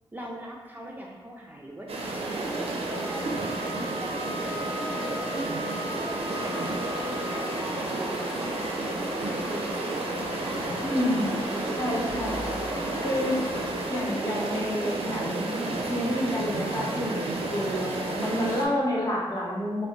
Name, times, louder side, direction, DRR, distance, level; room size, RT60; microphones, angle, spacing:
voice 1, 0.1-2.6 2.9-4.4 5.1-10.1 10.4-10.6, right 1 dB, 20° right, -2 dB, 0.3 m, -41 dB
sound 1, 1.9-18.6, right 2 dB, 90° right, 0.4 m, -31 dB
Wind instrument woodwind instrument, 2.8-7.6, left 1 dB, 75° left, 1.3 m, -39 dB
sound 2, 6.2-13.8, left 2 dB, 55° left, 1.0 m, -38 dB
voice 2, 10.8-12.6 13.0-13.4 13.9-15.6 15.9-17.2 17.5-19.9, left 1 dB, 35° left, -5 dB, 0.8 m, -29 dB
2.3 x 2.2 x 3.7 m, 1.2 s
wide cardioid pair, 85°, 10 cm